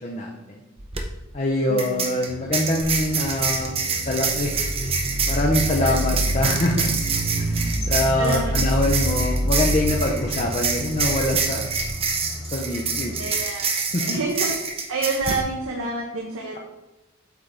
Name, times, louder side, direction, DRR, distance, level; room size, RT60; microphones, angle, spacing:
voice 1, 0.0-0.6 1.3-3.7 4.1-4.5 5.3-6.9 7.3-11.7 12.4-13.1 13.9-14.2, left 1 dB, 35° left, 0 dB, 0.6 m, -24 dB
sound 1, 0.8-1.0 1.8-15.4, right 5 dB, 25° right, 0.6 m, -27 dB
voice 2, 1.7-2.1 5.8-6.0 8.2-8.6 13.2-13.7 14.1-14.6 14.9-16.6, right 3 dB, 85° right, -1 dB, 0.8 m, -28 dB
sound 2, 2.3-13.2, left 1 dB, 10° left, 1.1 m, -37 dB
sound 3, 2.8-11.9, right 1 dB, 90° left, 1.9 m, -28 dB
8.0 x 3.7 x 3.4 m, 0.99 s
head